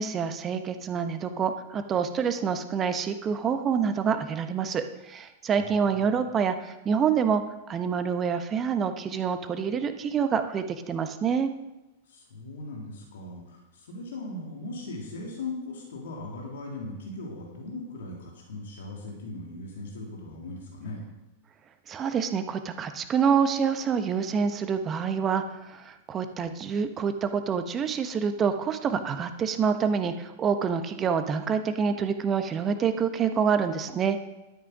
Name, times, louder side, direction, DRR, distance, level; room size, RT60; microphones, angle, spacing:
voice 1, 0.0-7.4 7.7-11.5 21.9-25.4 25.7-34.2, right 6 dB, 25° right, 8 dB, 1.2 m, -27 dB
voice 2, 5.5-6.1 12.1-21.0, left 2 dB, 65° left, -1 dB, 3.0 m, -39 dB
12.5 x 8.7 x 5.1 m, 1.0 s
figure-of-eight pair, 95°, 0 cm